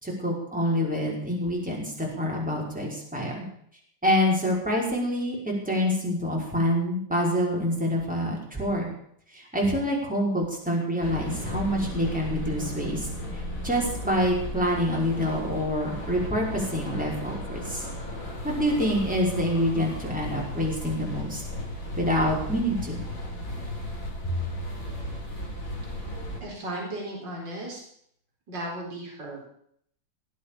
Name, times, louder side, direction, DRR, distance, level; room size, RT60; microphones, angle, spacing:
voice 1, 0.0-3.5 4.0-8.9 9.3-13.1 13.3-17.8 18.4-21.4 22.0-23.0 24.2-24.4, equal, 5° right, -3 dB, 5.4 m, -26 dB
sound 1, 11.0-26.4, equal, 40° left, 5.0 m, -35 dB
voice 2, 26.4-27.8 28.5-29.5, right 1 dB, 60° right, -1 dB, 5.2 m, -35 dB
19.5 x 8.5 x 8.6 m, 0.66 s
omnidirectional pair, 2.3 m